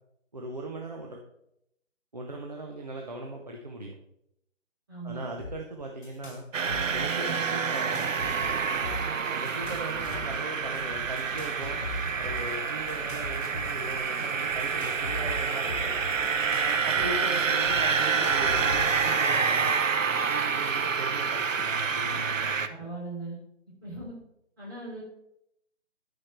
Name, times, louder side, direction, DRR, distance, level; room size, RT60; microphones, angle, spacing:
voice 1, 0.3-1.2 2.1-3.9 5.0-6.5 6.9-8.3 9.3-11.8 12.2-16.0 16.6-19.7 20.3-22.9, right 2 dB, 35° right, 1 dB, 0.8 m, -39 dB
voice 2, 4.9-5.2 16.9-17.0 22.7-23.4 23.8-24.1 24.6-25.0, right 2 dB, 15° right, -7 dB, 3.1 m, -39 dB
sound 1, 5.4-5.5 5.8-6.4 6.7-7.2 7.7-9.1 9.4-10.4 11.2-12.4 12.9-13.9 14.6-17.1 17.4-17.5 18.0-19.1, left 1 dB, 60° left, 2.5 m, -39 dB
sound 2, 6.5-22.7, right 5 dB, 85° right, 0.9 m, -28 dB
sound 3, 8.7-19.0, equal, 5° left, 2.0 m, -47 dB
13.0 x 5.1 x 4.4 m, 0.80 s
hypercardioid pair, 175°, 37 cm